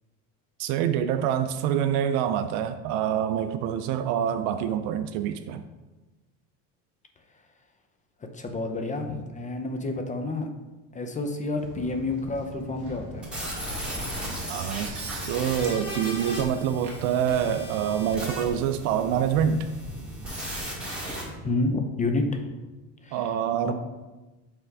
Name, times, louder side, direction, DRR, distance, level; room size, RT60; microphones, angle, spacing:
voice 1, 0.6-5.7 14.5-19.7 23.1-23.7, right 9 dB, 85° right, 10 dB, 0.5 m, -26 dB
voice 2, 8.3-10.5 10.9-13.3 21.4-22.5 23.0-23.2 23.7-23.8, left 2 dB, 20° left, 5 dB, 0.5 m, -29 dB
Walk footsteps, 11.6-21.5, right 1 dB, 60° right, 1.7 m, -42 dB
sound 1, 13.2-21.2, equal, ahead, 2.0 m, -36 dB
5.7 x 3.5 x 4.6 m, 1.1 s
supercardioid pair, 120°, 41 cm